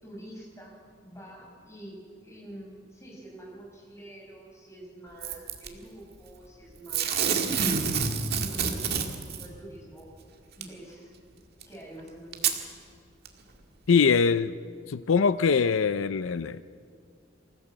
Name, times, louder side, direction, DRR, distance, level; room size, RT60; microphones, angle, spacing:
voice 1, 0.0-2.0 2.2-7.4 8.3-10.1 10.6-11.1 11.7-12.7, right 1 dB, 15° left, -2 dB, 6.0 m, -46 dB
Packing tape duct tape / Tearing, 5.2-5.7 6.9-9.5 10.6-10.7 11.6-11.7 12.3-12.6 13.2-13.3, right 6 dB, 55° right, 1.9 m, -27 dB
voice 2, 13.9-14.5 14.9-16.6, left 5 dB, 85° left, 14 dB, 0.5 m, -23 dB
25.5 x 16.0 x 7.7 m, 2.2 s
head